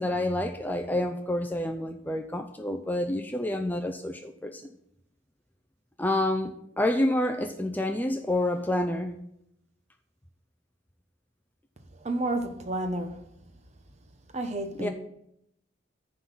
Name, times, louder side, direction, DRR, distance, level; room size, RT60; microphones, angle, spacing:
voice 1, 0.0-4.6 6.0-9.2 14.8-14.9, left 1 dB, 10° left, 0.4 m, -28 dB
voice 2, 12.0-13.2 14.3-14.9, right 1 dB, 35° right, 1.0 m, -30 dB
9.8 x 3.9 x 7.1 m
head